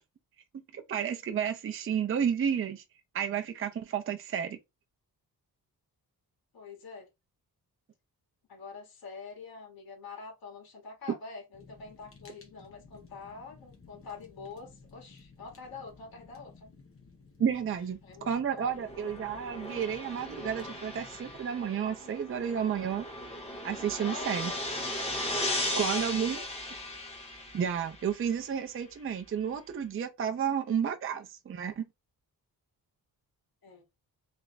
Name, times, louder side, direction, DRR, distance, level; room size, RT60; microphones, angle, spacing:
voice 1, 0.7-2.8 3.1-4.6 17.4-23.1 23.6-24.5 25.8-26.4 27.5-31.9, right 8 dB, 35° right, 0.5 m, -31 dB
voice 2, 6.5-7.1 8.5-16.7 18.0-18.7 24.0-24.6 25.4-26.4 33.6-33.8, left 5 dB, 70° left, 1.8 m, -45 dB
Fire, 11.5-21.4, left 4 dB, 35° left, 1.2 m, -55 dB
sound 1, 18.7-28.3, left 1 dB, 15° left, 1.2 m, -37 dB
3.4 x 3.4 x 3.9 m
wide cardioid pair, 175°, 37 cm